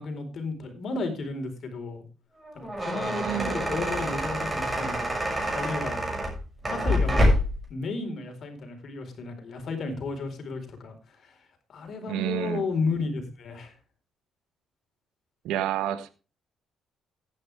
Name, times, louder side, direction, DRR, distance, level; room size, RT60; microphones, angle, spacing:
voice 1, 0.0-2.0 2.8-5.1 5.5-6.0 6.7-7.1 7.7-10.9 11.7-13.7, left 3 dB, 60° left, 6 dB, 4.2 m, -33 dB
sound 1, 2.4-7.6, equal, 20° right, 6.8 m, -26 dB
voice 2, 3.2-3.6 12.1-12.6 15.4-16.1, right 12 dB, 90° right, 12 dB, 1.3 m, -29 dB
15.5 x 10.0 x 3.4 m, 0.33 s
cardioid pair, 80°, 0 cm